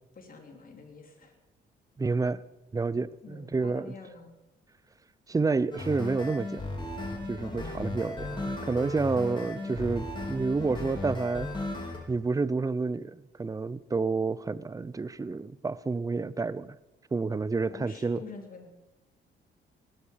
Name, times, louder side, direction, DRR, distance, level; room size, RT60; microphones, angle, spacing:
voice 1, 0.1-1.3 3.2-4.4 17.7-18.8, left 4 dB, 45° left, 4 dB, 3.2 m, -47 dB
voice 2, 2.0-2.4 2.7-3.9 5.3-6.6 7.3-11.5 12.1-16.8 17.1-18.2, right 4 dB, 15° right, 18 dB, 0.5 m, -29 dB
sound 1, 5.7-12.0, left 2 dB, 25° left, 4.2 m, -36 dB
19.0 x 12.0 x 5.1 m, 0.99 s
cardioid pair, 90°, 20 cm